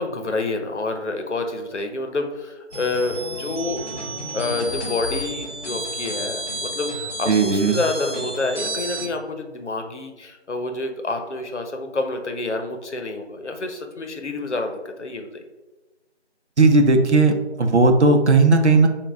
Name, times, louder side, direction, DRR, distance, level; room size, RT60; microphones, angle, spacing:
voice 1, 0.0-3.8 4.3-15.4, left 2 dB, 75° left, 5 dB, 0.7 m, -28 dB
sound 1, 2.7-9.1, right 1 dB, 35° left, 1.1 m, -31 dB
voice 2, 7.3-7.8 16.6-18.9, right 3 dB, 75° right, 5 dB, 0.7 m, -16 dB
5.2 x 2.3 x 3.4 m, 1.1 s
figure-of-eight pair, 175°, 35 cm